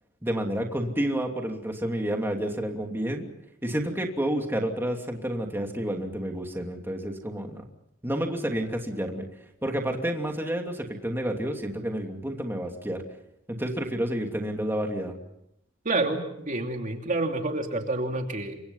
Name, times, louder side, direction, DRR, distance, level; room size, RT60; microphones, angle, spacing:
voice 1, 0.2-3.2 3.6-7.6 8.0-9.3 9.6-13.0 13.5-15.2, right 1 dB, 10° right, 2 dB, 2.9 m, -30 dB
voice 2, 15.8-18.6, right 2 dB, 40° right, 3 dB, 2.8 m, -28 dB
29.0 x 25.5 x 5.7 m, 0.78 s
head